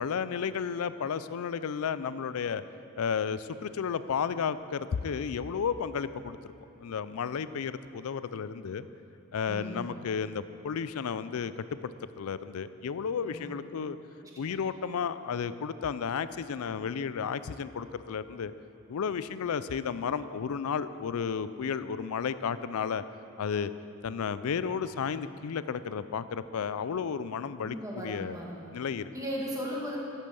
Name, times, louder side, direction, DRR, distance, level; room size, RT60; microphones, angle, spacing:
voice 1, 0.0-2.6 3.0-6.5 6.8-8.9 9.3-11.5 11.8-14.0 14.4-18.5 18.9-23.0 23.4-23.7 24.0-28.4 28.7-29.1, left 6 dB, 80° left, 14 dB, 0.4 m, -33 dB
voice 2, 9.5-9.9 13.2-13.5 14.2-14.6 27.6-28.7 29.1-30.0, equal, 15° right, -3 dB, 1.7 m, -37 dB
10.5 x 8.3 x 6.9 m, 2.7 s
head